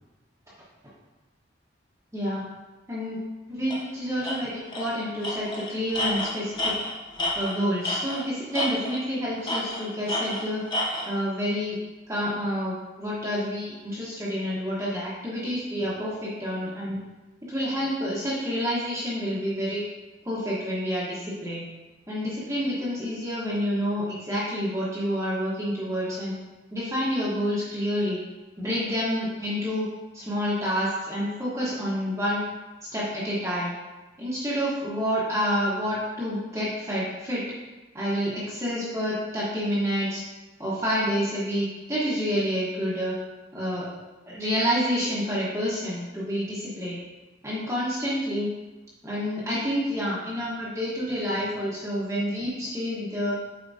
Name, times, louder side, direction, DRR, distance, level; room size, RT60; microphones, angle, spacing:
voice 1, 2.1-2.4 2.9-3.2 3.5-6.7 7.3-10.6 11.1-11.8 12.1-17.0 17.5-19.8 20.2-21.6 22.1-26.3 26.7-28.2 28.6-29.9 30.1-32.4 32.9-33.7 34.2-37.4 37.9-40.2 40.6-43.2 43.5-43.9 44.3-47.0 47.4-48.5 49.0-53.4, equal, 15° right, -8 dB, 1.2 m, -28 dB
Tools, 3.7-3.8 4.2-4.4 4.7-4.9 5.2-8.3 8.5-9.1 9.5-11.1, left 1 dB, 25° left, 0.8 m, -29 dB
8.2 x 4.6 x 2.7 m, 1.1 s
head